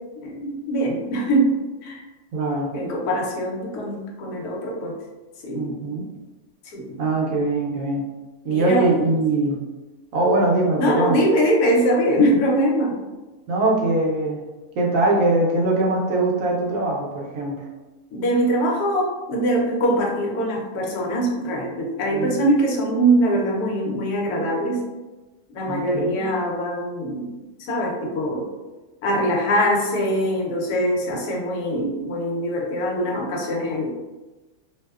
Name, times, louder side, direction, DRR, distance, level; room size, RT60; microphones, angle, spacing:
voice 1, 0.2-1.5 1.8-2.1 2.7-5.0 5.4-5.7 6.7-7.0 8.5-8.9 10.8-13.0 18.1-24.8 25.5-27.3 27.6-28.5 29.0-33.9, right 1 dB, 80° left, -1 dB, 1.1 m, -22 dB
voice 2, 2.3-2.7 5.5-6.1 7.0-8.1 8.4-9.6 10.1-11.2 13.5-14.4 14.8-17.7 22.1-22.4 25.7-26.3, right 2 dB, 70° right, -2 dB, 0.9 m, -22 dB
2.8 x 2.0 x 2.2 m, 1.1 s
omnidirectional pair, 1.6 m